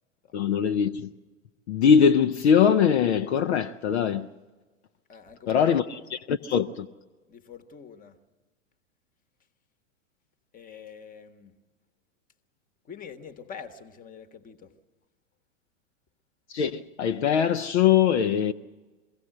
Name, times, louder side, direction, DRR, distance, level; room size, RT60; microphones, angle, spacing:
voice 1, 0.3-1.1 1.7-4.3 5.5-6.9 16.5-18.5, left 7 dB, 60° left, 0.7 m, -22 dB
voice 2, 5.1-5.9 7.3-8.2 10.5-11.6 12.9-14.7, left 7 dB, 20° left, 1.3 m, -45 dB
23.0 x 16.0 x 7.8 m
figure-of-eight pair, 95°, 38 cm